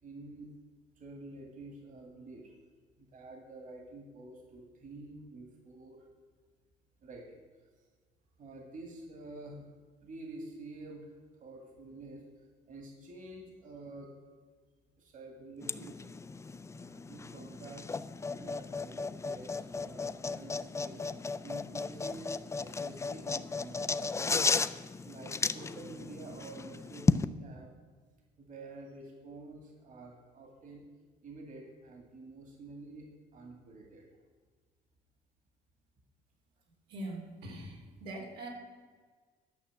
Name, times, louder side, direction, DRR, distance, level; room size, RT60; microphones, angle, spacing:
voice 1, 0.0-0.5 1.0-2.5 3.0-6.1 7.0-7.4 8.4-9.7 10.0-11.1 11.4-12.2 12.7-14.1 15.0-16.1 16.7-18.0 18.3-21.0 21.4-22.3 22.6-23.8 24.2-24.6 25.0-27.7 28.4-30.8 31.2-34.1, right 2 dB, 50° right, 2 dB, 2.2 m, -48 dB
sound 1, 15.6-27.3, left 4 dB, 15° left, 0.4 m, -34 dB
voice 2, 36.9-38.5, right 1 dB, 90° right, -1 dB, 3.0 m, -42 dB
12.0 x 6.0 x 7.3 m, 1.5 s
cardioid pair, 110°, 17 cm